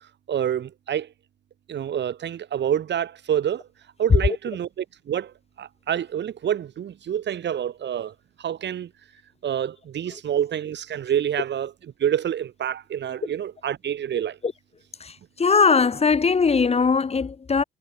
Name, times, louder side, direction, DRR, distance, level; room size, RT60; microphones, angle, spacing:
voice 1, 0.3-1.1 1.7-3.6 4.0-8.1 8.4-8.9 9.4-11.7 12.0-14.4, right 9 dB, 60° right, 3.3 m, -27 dB
voice 2, 15.0-17.6, left 5 dB, 30° left, 1.5 m, -20 dB
cardioid pair, 90°, 20 cm